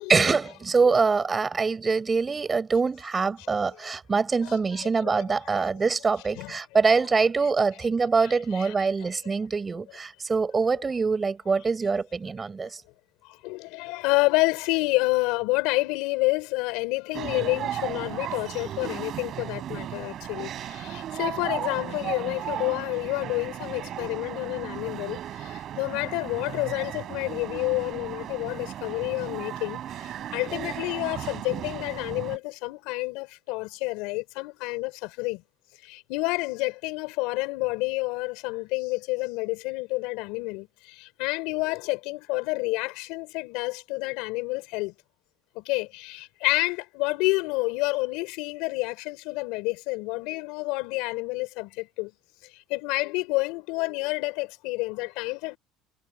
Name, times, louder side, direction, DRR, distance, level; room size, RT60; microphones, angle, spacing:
voice 1, 0.1-12.8, right 4 dB, 20° right, 5.7 m, -24 dB
voice 2, 4.4-4.9 5.5-5.6 6.4-6.6 8.5-8.7 9.0-9.1 12.6-12.7 13.4-35.4 35.8-44.9 45.5-52.1 52.7-55.6, left 24 dB, 80° left, 4.8 m, -29 dB
sound 1, 17.1-32.4, right 11 dB, 45° right, 6.5 m, -35 dB
cardioid pair, 145°, 0 cm